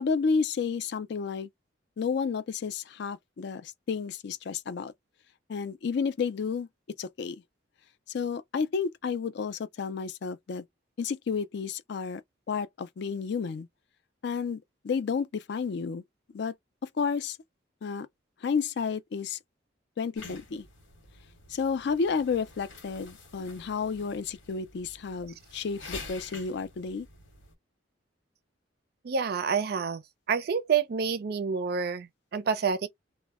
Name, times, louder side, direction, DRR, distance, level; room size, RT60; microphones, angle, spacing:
voice 1, 0.0-1.5 2.0-4.9 5.5-6.7 7.0-7.4 8.1-10.6 11.0-12.2 12.5-13.7 14.2-16.0 16.3-16.5 16.8-17.4 17.8-18.1 18.4-19.4 20.0-20.7 21.5-27.1, left 5 dB, 60° left, 0.4 m, -31 dB
sound 1, 20.1-27.5, left 3 dB, 85° left, 1.1 m, -47 dB
voice 2, 29.0-30.0 30.3-32.9, right 6 dB, 50° right, 0.4 m, -28 dB
2.1 x 2.1 x 3.3 m
head